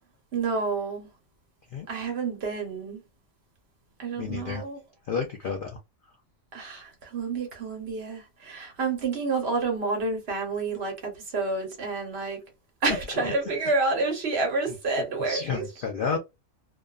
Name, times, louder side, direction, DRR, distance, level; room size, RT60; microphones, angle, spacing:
voice 1, 0.3-1.1 1.9-3.0 4.0-4.8 6.5-12.4 12.8-15.6 16.1-16.2, right 3 dB, 55° right, 1.0 m, -29 dB
voice 2, 4.2-4.6 5.1-5.8 15.3-16.2, left 5 dB, 65° left, 0.5 m, -30 dB
2.5 x 2.3 x 2.3 m
omnidirectional pair, 1.4 m